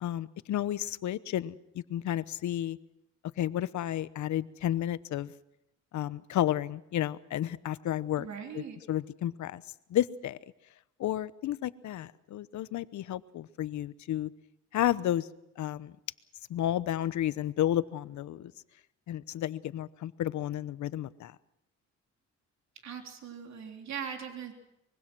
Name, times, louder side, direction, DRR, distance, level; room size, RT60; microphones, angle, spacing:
voice 1, 0.0-2.8 3.4-5.3 5.9-8.3 8.5-8.6 8.9-9.6 9.9-10.4 11.0-14.3 14.7-15.3 15.6-15.9 16.5-18.5 19.1-21.3, left 12 dB, 70° left, 16 dB, 1.0 m, -32 dB
voice 2, 8.2-8.8 22.8-24.5, right 8 dB, 65° right, 4 dB, 3.4 m, -40 dB
24.5 x 22.5 x 6.2 m, 0.83 s
cardioid pair, 90°, 30 cm